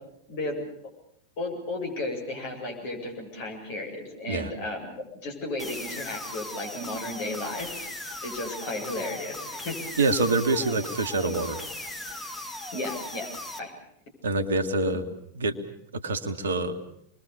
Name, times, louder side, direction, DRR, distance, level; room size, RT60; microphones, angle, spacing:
voice 1, 1.4-7.9 8.2-9.8 12.7-13.3 13.6-13.7, left 2 dB, 50° left, 1 dB, 8.0 m, -34 dB
sound 1, 5.6-13.6, left 1 dB, 10° left, 2.9 m, -38 dB
voice 2, 10.0-11.6 14.2-15.0 15.3-15.6 15.9-16.8, right 3 dB, 65° right, 8 dB, 1.8 m, -26 dB
27.0 x 22.0 x 7.1 m, 0.74 s
figure-of-eight pair, 90°, 0 cm